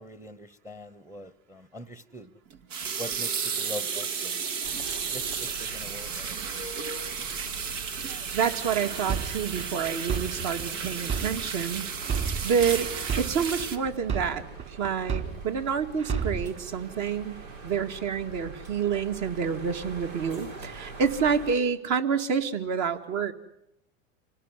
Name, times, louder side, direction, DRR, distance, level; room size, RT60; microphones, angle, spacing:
voice 1, 0.0-2.3 3.0-4.7 5.1-6.3, equal, 5° right, 1.0 m, -43 dB
sound 1, 2.5-13.8, right 6 dB, 75° right, 2.3 m, -33 dB
sound 2, 4.6-21.6, right 3 dB, 90° right, 4.2 m, -44 dB
voice 2, 8.3-11.9 12.4-12.9 13.2-17.4 17.6-23.3, right 6 dB, 45° right, 2.3 m, -28 dB
sound 3, 8.6-11.6 12.0-15.6 16.0-16.6, right 6 dB, 30° right, 3.5 m, -32 dB
27.0 x 19.0 x 9.9 m
supercardioid pair, 120°, 38 cm